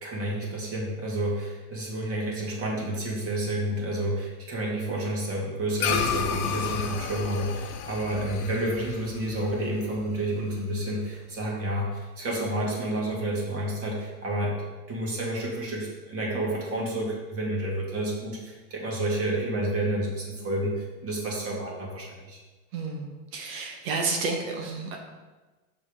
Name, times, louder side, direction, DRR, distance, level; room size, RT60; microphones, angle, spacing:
voice 1, 0.0-14.5 14.9-22.4, right 1 dB, 30° right, -2 dB, 2.0 m, -30 dB
sound 1, 5.8-10.4, left 7 dB, 75° left, 0.9 m, -32 dB
voice 2, 22.7-25.0, right 4 dB, 70° right, 1 dB, 1.3 m, -31 dB
6.1 x 5.3 x 3.7 m, 1.2 s
supercardioid pair, 125°, 44 cm